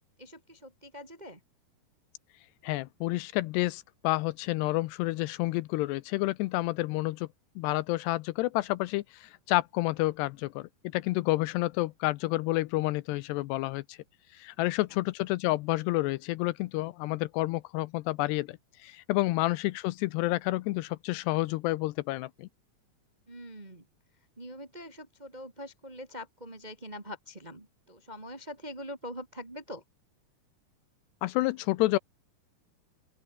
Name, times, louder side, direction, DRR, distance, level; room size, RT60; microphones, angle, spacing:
voice 1, 0.0-1.4 19.3-19.4 23.3-23.8 24.4-29.8, equal, 35° right, 0.7 m, -44 dB
voice 2, 2.6-7.3 7.6-14.0 14.3-22.5 31.2-32.0, left 19 dB, 80° left, 2.7 m, -29 dB
open air
omnidirectional pair, 5.0 m